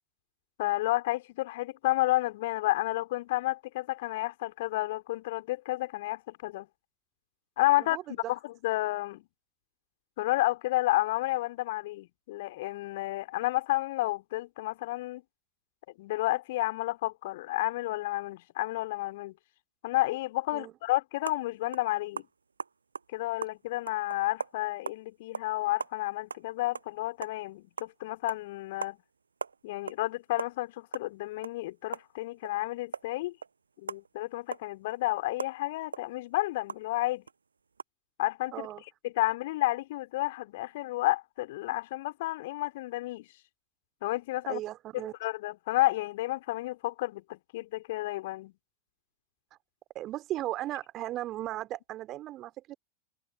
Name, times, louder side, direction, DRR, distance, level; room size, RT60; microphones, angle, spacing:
voice 1, 0.6-6.7 7.6-8.0 8.3-9.3 10.2-15.2 16.0-19.3 19.8-22.3 23.1-29.0 29.6-33.4 33.8-37.2 38.2-38.7 39.0-43.3 44.0-44.6 45.2-48.5, left 18 dB, 50° left, 3.5 m, -31 dB
voice 2, 7.8-8.3 20.5-20.7 38.5-38.8 44.5-45.1 49.9-52.8, right 14 dB, 35° right, 3.9 m, -36 dB
sound 1, 21.2-21.4 21.7-21.9 22.2-25.0 25.3-25.5 25.8-27.4 27.8-28.0 28.3-28.4 28.8-29.0 29.2-30.1 30.3-32.6 32.9-36.9 37.3-37.4 37.7-37.8, right 5 dB, 75° right, 7.8 m, -40 dB
figure-of-eight pair, 90°, 0 cm